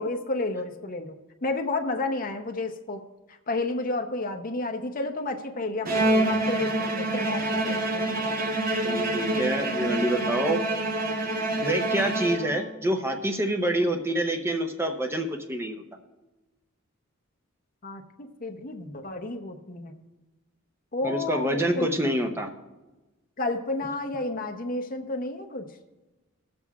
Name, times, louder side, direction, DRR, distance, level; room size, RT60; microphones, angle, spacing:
voice 1, 0.0-3.0 3.3-8.3 8.9-9.1 17.8-20.0 20.9-21.9 23.4-25.7, left 2 dB, 40° left, 4 dB, 0.8 m, -31 dB
Bowed string instrument, 5.8-12.8, right 1 dB, 40° right, 0.9 m, -27 dB
voice 2, 8.8-10.6 11.6-15.8 21.0-22.5, right 1 dB, 10° right, 4 dB, 0.7 m, -27 dB
21.0 x 7.6 x 2.4 m, 1.1 s
head